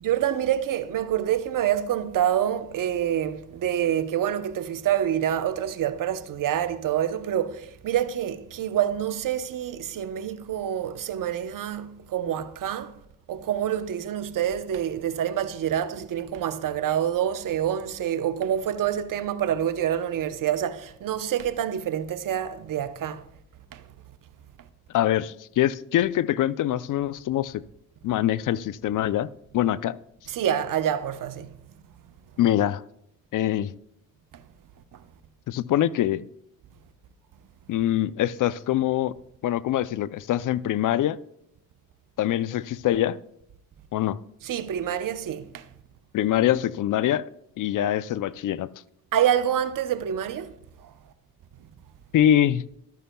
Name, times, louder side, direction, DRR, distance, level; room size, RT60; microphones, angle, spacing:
voice 1, 0.0-13.0 13.3-23.2 23.7-23.8 30.3-31.5 34.3-34.4 34.9-35.0 44.4-45.7 49.1-50.5 50.8-50.9, right 10 dB, 65° right, 0.8 m, -27 dB
voice 2, 24.9-27.6 28.0-29.3 29.5-30.0 32.4-32.8 33.3-33.7 35.5-36.3 37.7-39.1 39.4-41.2 42.2-43.2 43.9-44.2 46.1-47.3 47.6-48.7 52.1-52.6, left 12 dB, 65° left, 0.5 m, -24 dB
14.0 x 12.5 x 2.2 m
cardioid pair, 70°, 35 cm